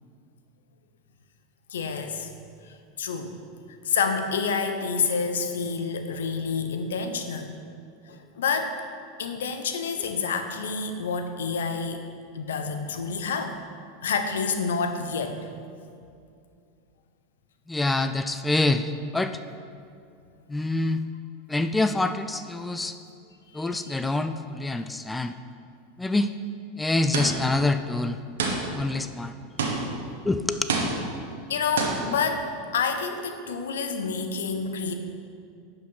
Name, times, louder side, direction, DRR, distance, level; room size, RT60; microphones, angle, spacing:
voice 1, 1.7-2.3 3.0-3.4 3.8-7.5 8.1-8.7 9.2-12.1 12.3-13.6 14.0-15.5 23.5-23.6 31.5-34.9, left 5 dB, 85° left, 7 dB, 0.8 m, -28 dB
voice 2, 17.7-19.4 20.5-21.0 21.5-22.9 23.5-25.3 26.0-26.3 26.8-28.2 28.7-29.3 30.3-30.7, left 2 dB, 10° left, 9 dB, 0.4 m, -26 dB
sound 1, 27.1-27.6 28.4-28.9 29.6-30.1 30.7-31.3 31.8-32.2, right 3 dB, 85° right, 1.3 m, -28 dB
10.5 x 5.2 x 5.5 m, 2.4 s
hypercardioid pair, 105°, 0 cm